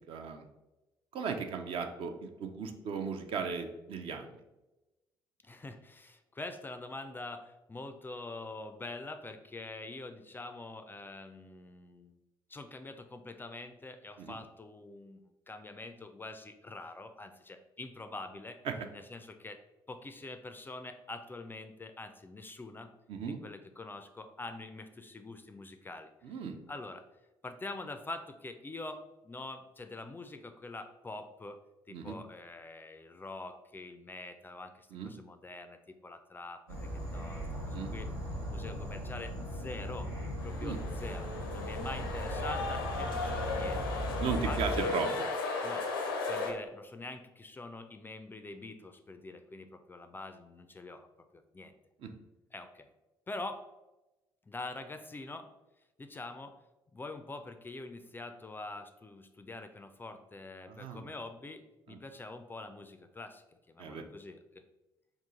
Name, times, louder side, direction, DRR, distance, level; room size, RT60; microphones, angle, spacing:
voice 1, 0.1-0.5 1.1-4.3 14.2-14.4 18.7-18.8 23.1-23.4 26.2-26.6 31.9-32.1 34.9-35.1 37.7-37.9 40.6-40.8 44.2-45.1 52.0-52.1 60.7-61.1 61.9-62.0 63.8-64.0, right 6 dB, 50° right, 6 dB, 0.4 m, -36 dB
voice 2, 5.4-12.2 12.5-15.2 15.5-18.6 18.9-19.6 19.9-22.9 23.2-26.1 26.7-27.0 27.4-31.6 31.9-38.1 38.5-40.1 40.4-44.0 44.4-45.0 45.6-45.9 46.3-51.1 51.3-51.7 52.5-52.9 53.3-53.6 54.5-55.5 56.0-56.6 56.9-64.4, left 2 dB, 20° left, 8 dB, 0.3 m, -45 dB
Insect / Frog, 36.7-44.7, equal, 85° right, 0.8 m, -38 dB
sound 1, 40.4-46.5, left 3 dB, 80° left, 0.5 m, -36 dB
3.6 x 2.3 x 3.8 m, 1.0 s
figure-of-eight pair, 45°, 12 cm